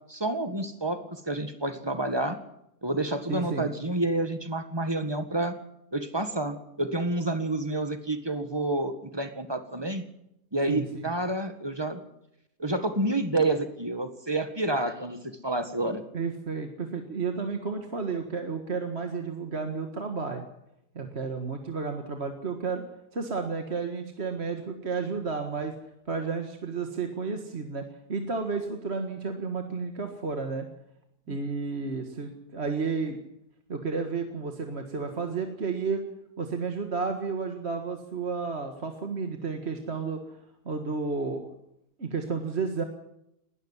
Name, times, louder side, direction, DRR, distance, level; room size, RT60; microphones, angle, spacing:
voice 1, 0.1-2.4 2.8-5.5 5.9-10.0 10.5-12.0 12.6-16.0 31.3-31.4, right 2 dB, 15° right, 9 dB, 1.7 m, -29 dB
voice 2, 3.3-3.7 10.7-10.9 16.1-20.5 21.0-22.8 23.1-25.7 26.1-27.8 28.1-30.7 31.3-33.2 33.7-36.0 36.4-40.2 40.7-41.5 42.0-42.8, right 4 dB, 40° right, 5 dB, 1.9 m, -32 dB
20.0 x 13.0 x 9.9 m, 0.81 s
omnidirectional pair, 1.7 m